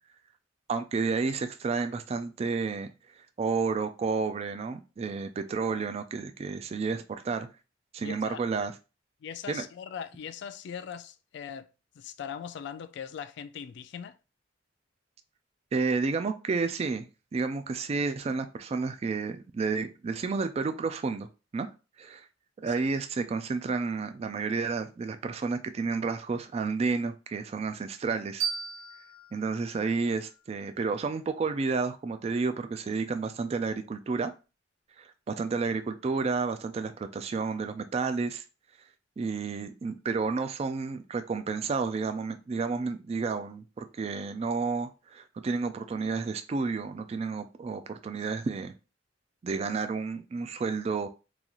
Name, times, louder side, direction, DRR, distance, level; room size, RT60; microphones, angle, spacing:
voice 1, 0.7-2.9 3.2-7.5 7.9-8.7 9.5-9.6 15.7-21.3 21.5-21.7 22.0-22.3 22.6-28.5 29.3-34.3 35.0-38.4 39.2-48.7 49.4-51.1, right 4 dB, 35° right, 0.3 m, -31 dB
voice 2, 8.0-8.4 9.2-11.7 12.0-14.2 22.6-22.7, left 7 dB, 65° left, 0.3 m, -40 dB
sound 1, 28.4-31.2, right 6 dB, 90° right, 1.3 m, -38 dB
3.9 x 2.4 x 2.9 m
head